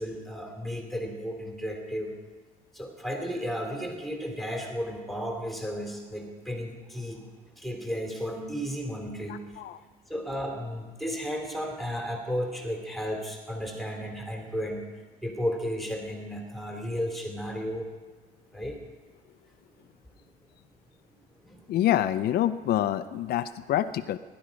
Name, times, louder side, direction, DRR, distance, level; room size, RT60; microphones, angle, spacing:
voice 1, 0.0-2.2 2.7-7.2 7.6-9.6 10.1-14.9 15.2-17.9 18.5-18.8 19.7-19.8 21.4-21.8, equal, ahead, 1 dB, 2.7 m, -34 dB
voice 2, 21.7-24.2, left 12 dB, 65° left, 11 dB, 0.6 m, -26 dB
21.0 x 11.5 x 5.1 m, 1.4 s
cardioid pair, 110°, 17 cm